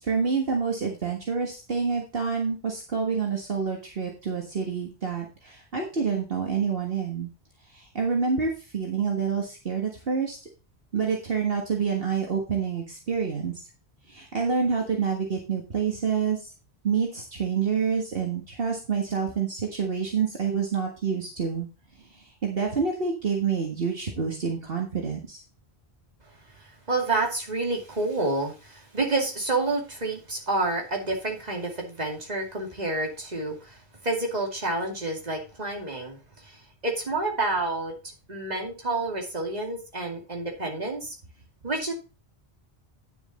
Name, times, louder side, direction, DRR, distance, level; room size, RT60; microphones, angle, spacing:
voice 1, 0.0-7.3 7.7-10.4 10.9-13.6 14.1-16.5 16.8-21.7 22.0-25.4, right 6 dB, 60° right, 0 dB, 1.8 m, -27 dB
voice 2, 26.6-37.9 38.3-41.1 41.6-41.9, right 2 dB, 40° right, 1 dB, 2.6 m, -29 dB
10.0 x 6.9 x 4.1 m, 0.31 s
omnidirectional pair, 1.1 m